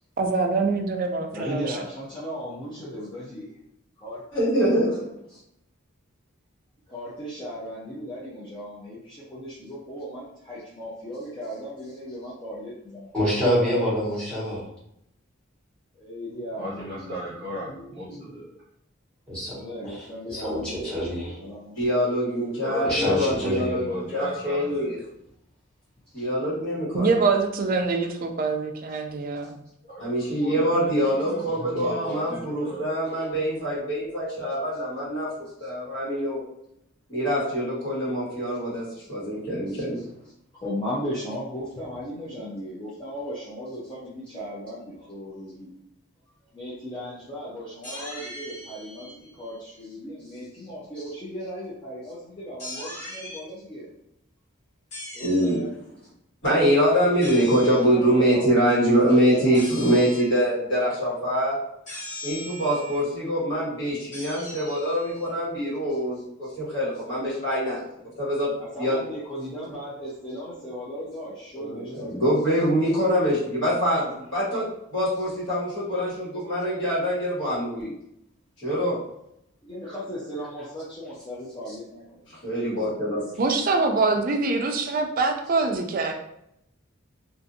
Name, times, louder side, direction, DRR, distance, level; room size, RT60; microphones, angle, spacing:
voice 1, 0.2-1.8 26.9-29.6 83.4-86.1, right 3 dB, 45° right, 4 dB, 0.3 m, -24 dB
voice 2, 1.3-3.5 4.0-4.2 6.9-13.1 13.6-13.9 15.9-17.1 19.5-20.9 21.4-21.9 40.5-45.7 46.5-53.9 55.1-55.7 57.6-58.5 59.0-60.1 68.6-72.2 79.6-82.2, equal, 20° left, -8 dB, 0.5 m, -36 dB
voice 3, 4.3-5.0 21.8-25.0 26.1-27.1 30.0-35.3 35.6-36.4 37.1-40.0 55.2-55.6 56.4-61.5 62.2-67.8 68.2-68.5 68.8-69.0 71.6-74.6 74.9-77.9 78.6-78.9 82.4-83.2, equal, 60° left, -8 dB, 1.5 m, -24 dB
voice 4, 13.1-14.7 19.3-19.5 19.8-21.4 22.8-23.7 26.2-26.3, equal, 5° left, -9 dB, 1.1 m, -26 dB
voice 5, 16.6-18.6 21.0-21.6 22.6-24.9 29.8-30.1 30.4-32.9, equal, 25° right, -8 dB, 0.8 m, -36 dB
sound 1, 47.8-49.8 52.6-53.4 54.9-55.6 57.2-57.8 59.5-60.4 61.9-63.0 64.1-65.3, left 1 dB, 35° left, 1.2 m, -39 dB
2.6 x 2.5 x 2.6 m, 0.78 s
head